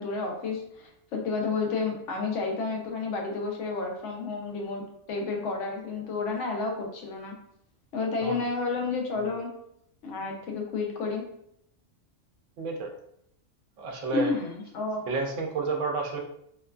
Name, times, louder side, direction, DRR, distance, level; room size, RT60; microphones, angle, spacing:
voice 1, 0.0-7.4 7.9-9.5 10.0-11.2 14.1-15.1, left 4 dB, 85° left, 1 dB, 1.0 m, -31 dB
voice 2, 12.6-12.9 13.8-14.3 15.1-16.2, right 4 dB, 85° right, 1 dB, 0.9 m, -30 dB
3.0 x 2.3 x 2.2 m, 0.73 s
omnidirectional pair, 1.2 m